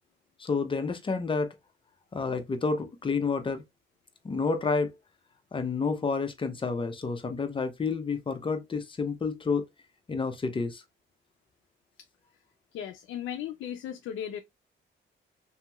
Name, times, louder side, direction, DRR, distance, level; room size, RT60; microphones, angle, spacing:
voice 1, 0.4-1.5 2.1-3.6 4.2-4.9 5.5-9.6 10.1-10.8, left 4 dB, 25° left, 0.7 m, -29 dB
voice 2, 12.7-14.4, left 10 dB, 75° left, 0.5 m, -36 dB
2.9 x 2.7 x 2.3 m
cardioid pair, 90°, 20 cm